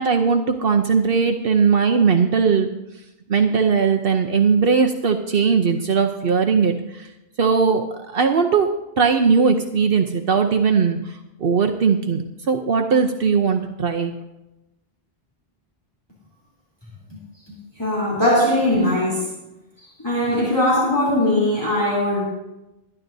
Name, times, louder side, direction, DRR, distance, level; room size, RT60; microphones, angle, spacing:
voice 1, 0.0-2.7 3.3-7.1 7.4-8.7 9.0-14.2, right 5 dB, 65° right, 0.9 m, -19 dB
voice 2, 17.8-19.2 20.0-22.3, left 1 dB, 25° left, 3.5 m, -20 dB
22.0 x 11.0 x 2.7 m
omnidirectional pair, 1.0 m